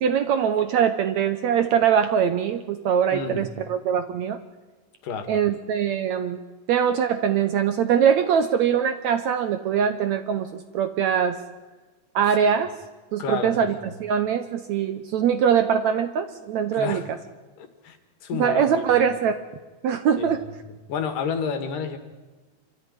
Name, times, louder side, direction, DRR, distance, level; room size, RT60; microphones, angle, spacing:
voice 1, 0.0-4.4 5.3-6.4 6.7-11.4 12.2-12.7 13.1-13.8 14.0-17.0 18.3-19.4 19.8-20.4, right 8 dB, 70° right, 9 dB, 1.9 m, -22 dB
voice 2, 3.1-3.5 5.0-5.3 13.2-13.6 16.7-17.0 17.6-18.0 18.2-18.8 20.2-20.3 20.9-22.0, left 6 dB, 70° left, 8 dB, 3.3 m, -30 dB
26.5 x 13.5 x 9.8 m, 1.3 s
omnidirectional pair, 4.1 m